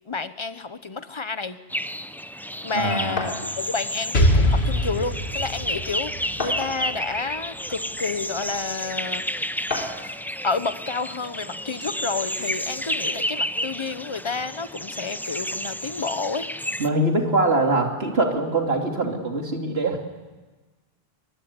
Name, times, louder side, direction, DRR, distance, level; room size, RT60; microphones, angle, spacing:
voice 1, 0.1-1.6 2.6-9.6 10.4-16.5, left 4 dB, 30° left, 12 dB, 0.9 m, -30 dB
sound 1, 1.7-16.9, equal, 5° left, 0.4 m, -31 dB
voice 2, 2.7-3.2 16.8-20.0, right 2 dB, 75° right, 2 dB, 3.3 m, -23 dB
sound 2, 3.2-3.4 4.6-4.7 5.1-5.2 6.4-7.0 7.9-8.0 9.7-10.1, left 3 dB, 55° left, 3.9 m, -30 dB
Explosion, 4.1-7.9, equal, 80° left, 2.4 m, -23 dB
23.5 x 19.0 x 9.7 m, 1.3 s
omnidirectional pair, 1.1 m